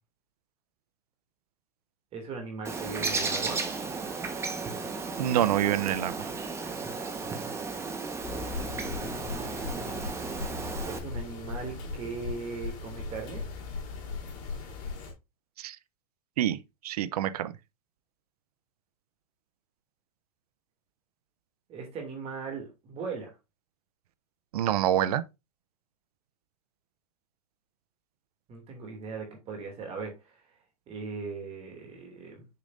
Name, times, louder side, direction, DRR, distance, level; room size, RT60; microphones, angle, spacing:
voice 1, 2.1-3.7 8.6-10.0 10.8-13.5 21.7-23.3 28.5-30.4 30.9-32.5, right 4 dB, 30° right, 2.7 m, -39 dB
Bird, 2.6-11.0, right 4 dB, 15° right, 1.3 m, -34 dB
voice 2, 5.2-6.3 15.6-15.8 16.4-17.6 24.5-25.2, right 12 dB, 75° right, 0.7 m, -27 dB
sound 1, 8.2-15.1, left 4 dB, 40° left, 3.7 m, -38 dB
6.9 x 6.4 x 2.6 m
hypercardioid pair, 135°, 20 cm